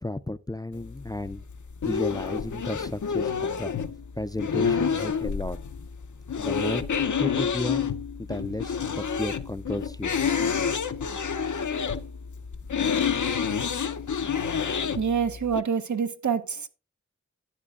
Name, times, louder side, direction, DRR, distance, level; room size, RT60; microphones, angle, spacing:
voice 1, 0.0-1.4 1.9-3.7 4.2-5.6 6.4-6.8 7.2-7.8 8.2-10.1, left 1 dB, 15° left, 0.4 m, -33 dB
sound 1, 0.7-15.6, left 6 dB, 85° left, 0.6 m, -29 dB
voice 2, 15.0-16.7, right 6 dB, 75° right, 0.8 m, -26 dB
12.0 x 9.2 x 2.4 m
wide cardioid pair, 65°, 29 cm